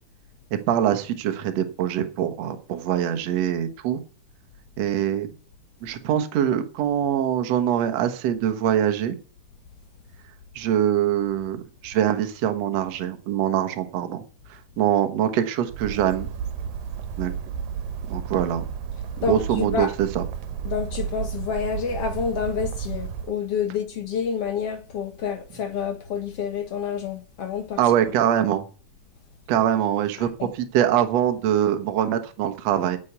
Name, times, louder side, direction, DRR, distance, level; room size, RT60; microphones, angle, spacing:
voice 1, 0.7-4.0 4.8-5.3 5.8-9.2 10.6-14.2 14.5-16.3 17.2-17.3 18.1-18.6 19.3-20.2 27.8-28.7 29.5-33.0, right 10 dB, 60° right, 2.2 m, -23 dB
Bird, 15.7-23.3, right 7 dB, 85° right, 2.7 m, -32 dB
voice 2, 19.2-19.9 20.7-27.8 30.2-30.5, left 6 dB, 55° left, 2.1 m, -28 dB
9.3 x 8.0 x 8.1 m
omnidirectional pair, 3.8 m